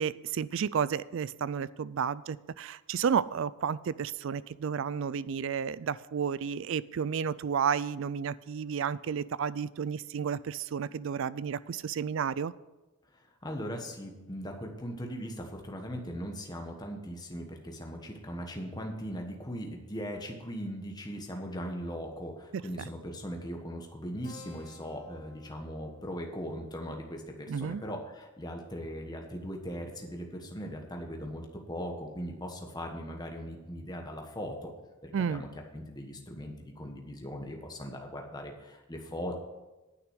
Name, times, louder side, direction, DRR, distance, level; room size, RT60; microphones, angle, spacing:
voice 1, 0.0-12.5 27.5-27.8 35.1-35.4, right 7 dB, 60° right, 19 dB, 0.3 m, -32 dB
voice 2, 13.1-34.7 35.0-39.3, equal, 20° left, 2 dB, 1.3 m, -39 dB
Keyboard (musical), 24.2-29.2, left 4 dB, 35° left, 1.9 m, -57 dB
9.7 x 5.9 x 8.1 m, 1.1 s
head